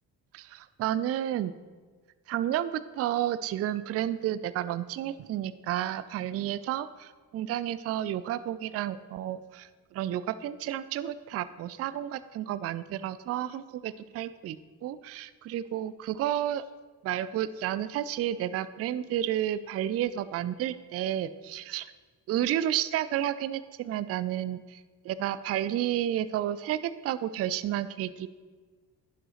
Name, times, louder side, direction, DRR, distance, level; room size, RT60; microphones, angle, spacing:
voice 1, 0.3-1.5 2.3-16.6 17.0-21.9 22.3-28.3, right 11 dB, 35° right, 15 dB, 0.4 m, -31 dB
11.0 x 6.3 x 3.1 m, 1.5 s
hypercardioid pair, 40°, 49 cm